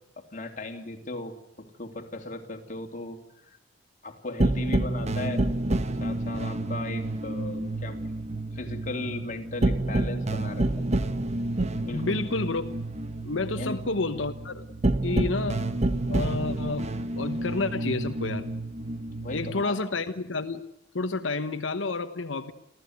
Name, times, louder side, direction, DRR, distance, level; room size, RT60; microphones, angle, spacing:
voice 1, 0.2-3.2 3.4-3.6 4.0-5.4 6.0-8.0 8.5-10.7 11.9-12.2 13.6-13.8 19.2-19.8, left 2 dB, 40° left, 3 dB, 2.9 m, -37 dB
sound 1, 4.4-19.6, right 2 dB, 35° right, 1.2 m, -29 dB
voice 2, 11.9-12.7 13.2-14.7 15.0-15.6 16.1-18.5 19.3-20.6 20.9-22.5, left 3 dB, 85° left, 7 dB, 1.1 m, -30 dB
29.5 x 14.5 x 9.5 m, 0.80 s
head